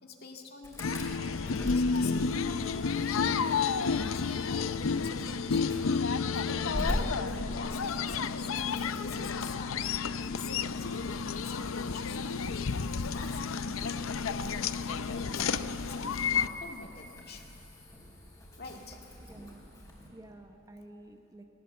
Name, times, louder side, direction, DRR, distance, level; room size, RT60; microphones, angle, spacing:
voice 1, 0.0-5.7 6.7-6.8 7.2-10.0 10.3-12.6 13.0-14.7 15.0-17.6 18.6-19.0, left 3 dB, 50° left, 2 dB, 2.0 m, -46 dB
Insect / Alarm, 0.6-20.1, equal, 15° left, 3.9 m, -43 dB
sound 1, 0.8-16.5, left 5 dB, 75° left, 0.6 m, -31 dB
voice 2, 19.3-19.7 20.1-21.4, right 1 dB, 15° right, 4 dB, 1.0 m, -50 dB
19.5 x 18.5 x 8.0 m, 2.9 s
head